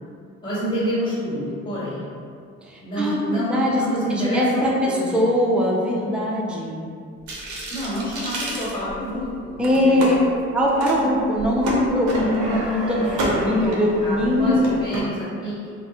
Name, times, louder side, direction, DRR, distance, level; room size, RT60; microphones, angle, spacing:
voice 1, 0.4-2.1 2.8-5.2 7.7-9.5 9.8-10.2 13.6-13.7 14.0-15.7, equal, 25° left, -10 dB, 0.8 m, -28 dB
voice 2, 3.0-3.8 4.1-6.8 9.6-10.2 10.5-14.8, left 1 dB, 5° right, -3 dB, 0.3 m, -21 dB
sound 1, 7.3-9.2 9.6-10.1 10.7-11.0 11.3-15.0, right 1 dB, 75° right, 0.6 m, -29 dB
2.3 x 2.0 x 2.7 m, 2.3 s
cardioid pair, 90°, 30 cm